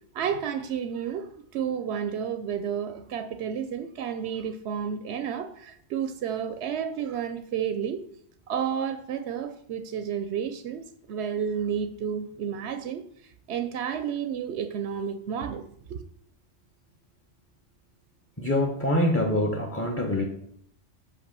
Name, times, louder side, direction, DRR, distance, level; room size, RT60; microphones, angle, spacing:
voice 1, 0.1-8.0 8.5-16.0, right 8 dB, 70° right, 10 dB, 0.8 m, -31 dB
voice 2, 18.4-20.2, left 1 dB, 15° left, 1 dB, 0.8 m, -25 dB
5.8 x 5.6 x 6.7 m, 0.69 s
omnidirectional pair, 1.2 m